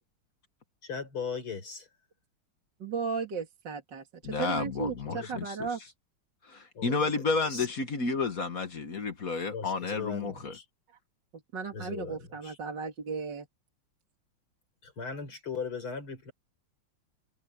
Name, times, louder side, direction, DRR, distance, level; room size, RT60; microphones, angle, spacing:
voice 1, 0.8-1.9 4.6-4.7 5.1-5.3 6.7-7.7 9.5-10.6 11.7-12.6 14.8-16.3, left 5 dB, 80° left, 6.3 m, -38 dB
voice 2, 2.8-5.8 11.5-13.5, right 5 dB, 55° right, 3.1 m, -35 dB
voice 3, 4.2-5.6 6.4-10.6, left 4 dB, 45° left, 1.8 m, -31 dB
omnidirectional pair, 2.3 m